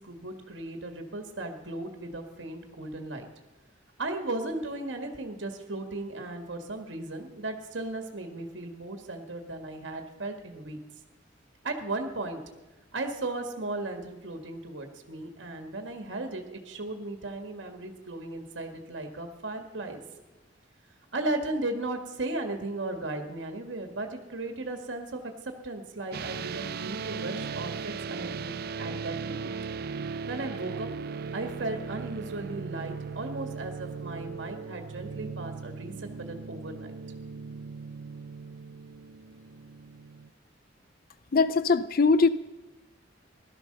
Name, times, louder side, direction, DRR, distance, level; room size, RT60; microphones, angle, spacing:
voice 1, 0.0-3.3 4.0-10.8 11.6-12.4 12.9-20.0 21.1-29.5 30.3-30.9 31.3-36.9, right 2 dB, 75° right, 5 dB, 1.7 m, -36 dB
Drop D Chord, 26.1-40.3, right 5 dB, 55° right, 0.5 m, -38 dB
voice 2, 41.3-42.3, left 4 dB, 50° left, 14 dB, 0.5 m, -21 dB
16.5 x 12.5 x 6.7 m, 1.1 s
head